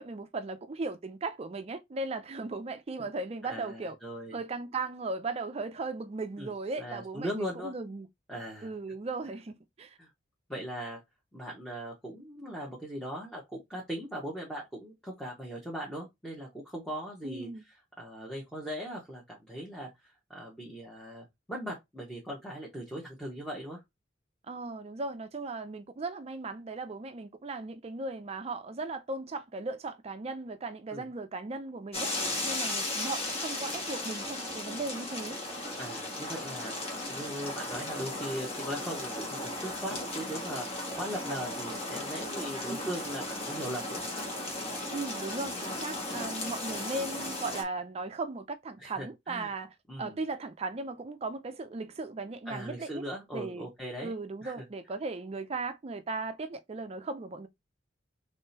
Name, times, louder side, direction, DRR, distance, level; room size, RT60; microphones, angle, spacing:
voice 1, 0.0-4.0 4.3-8.1 8.6-10.0 17.2-17.6 24.5-32.1 32.4-35.4 42.5-42.9 44.9-53.0 53.3-53.7 54.0-57.5, right 3 dB, 30° right, 0.4 m, -37 dB
voice 2, 3.5-4.4 6.4-6.5 6.8-7.7 8.3-8.7 10.0-10.1 10.5-11.0 11.3-23.8 30.9-31.0 35.8-44.0 48.8-49.5 49.9-50.2 52.5-54.1 54.4-54.6, equal, 5° left, 1.0 m, -39 dB
sound 1, 31.9-47.6, left 2 dB, 30° left, 1.3 m, -36 dB
3.6 x 3.2 x 2.7 m
head